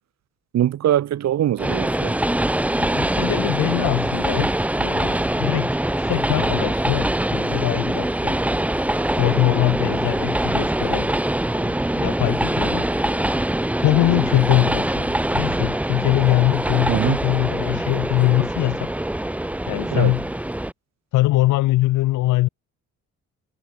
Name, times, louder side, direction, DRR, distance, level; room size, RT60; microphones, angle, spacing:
voice 1, 0.5-2.2 16.9-17.2 19.9-20.1, right 11 dB, 60° right, 1.1 m, -22 dB
Train, 1.6-20.7, right 1 dB, 5° right, 0.9 m, -23 dB
voice 2, 2.8-4.5 4.8-8.4 9.2-11.1 11.6-12.9 13.8-18.9 19.7-20.3 21.1-22.5, left 17 dB, 90° left, 1.0 m, -22 dB
cardioid pair, 90°, 30 cm